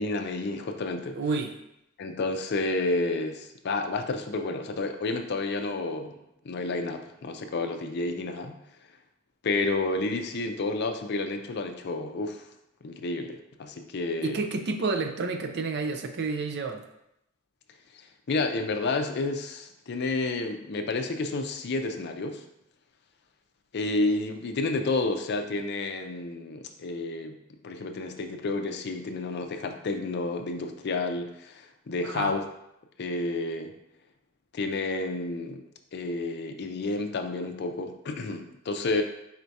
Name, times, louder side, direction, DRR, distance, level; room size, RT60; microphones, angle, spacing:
voice 1, 0.0-1.2 2.0-6.2 6.4-8.6 9.4-12.4 12.8-14.4 17.9-22.4 23.7-27.4 27.6-32.4 33.0-33.7 34.5-35.6 35.9-39.0, left 2 dB, 50° left, 6 dB, 0.4 m, -30 dB
voice 2, 1.2-1.5 14.2-16.8 32.0-32.3, right 4 dB, 50° right, 5 dB, 0.5 m, -30 dB
4.2 x 2.7 x 4.6 m, 0.83 s
head